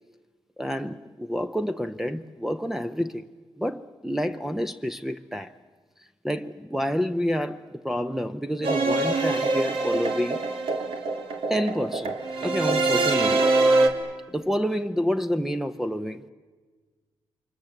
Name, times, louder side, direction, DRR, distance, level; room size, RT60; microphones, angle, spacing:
voice 1, 0.6-3.3 3.6-5.5 6.0-10.5 11.5-13.5 14.3-16.3, equal, 5° right, 0.8 m, -29 dB
sound 1, 8.6-13.9, right 2 dB, 75° right, 2.4 m, -24 dB
28.0 x 24.0 x 7.9 m
cardioid pair, 85°, 9 cm